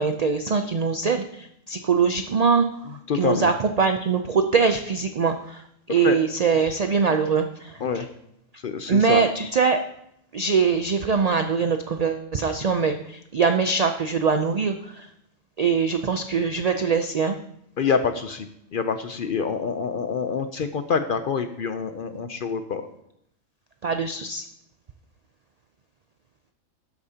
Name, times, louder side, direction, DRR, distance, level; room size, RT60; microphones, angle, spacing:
voice 1, 0.0-2.7 3.1-5.6 5.9-8.0 8.9-9.8 10.3-15.1 15.6-17.4 23.8-24.4, right 5 dB, 80° right, 6 dB, 0.3 m, -22 dB
voice 2, 3.1-3.5 6.0-6.2 7.8-8.1 8.6-9.2 17.8-22.9, left 6 dB, 55° left, 9 dB, 0.6 m, -26 dB
12.0 x 8.5 x 2.8 m, 0.76 s
omnidirectional pair, 1.4 m